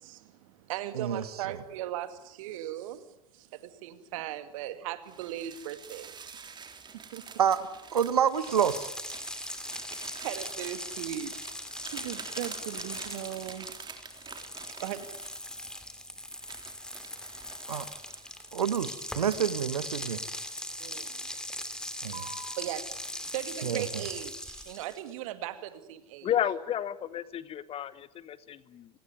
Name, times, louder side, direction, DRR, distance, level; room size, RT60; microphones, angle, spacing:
voice 1, 0.0-3.1 3.3-6.4 6.9-7.3 10.2-11.3 11.9-13.7 14.8-15.1 20.8-21.3 22.6-26.3, right 12 dB, 60° right, 11 dB, 2.3 m, -38 dB
sound 1, 5.0-15.8 16.3-19.5 20.1-21.0 21.3-21.6 22.1-22.6, right 5 dB, 20° right, 3.7 m, -47 dB
voice 2, 7.9-8.9 17.7-17.9 18.5-20.2 22.0-22.3 23.6-23.8, right 8 dB, 75° right, 14 dB, 1.5 m, -27 dB
sound 2, 8.3-25.1, left 1 dB, 5° left, 2.9 m, -40 dB
voice 3, 26.2-29.0, left 10 dB, 30° left, 17 dB, 1.1 m, -32 dB
30.0 x 18.5 x 9.5 m, 0.88 s
figure-of-eight pair, 85°, 20 cm